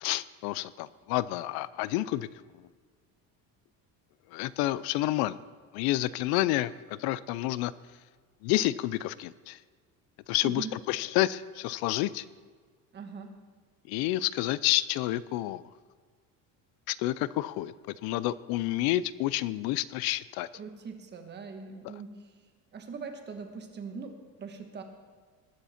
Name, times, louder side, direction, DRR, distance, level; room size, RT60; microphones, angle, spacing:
voice 1, 0.0-2.3 4.3-5.4 5.7-6.7 7.0-7.7 8.4-9.6 10.3-12.2 13.9-15.6 16.9-17.7 18.0-20.5, left 16 dB, 75° left, 18 dB, 0.5 m, -29 dB
voice 2, 10.4-10.8 12.9-13.4 20.5-22.2 22.7-24.8, right 5 dB, 30° right, 5 dB, 1.3 m, -41 dB
20.0 x 8.2 x 4.3 m, 1.6 s
cardioid pair, 160°, 37 cm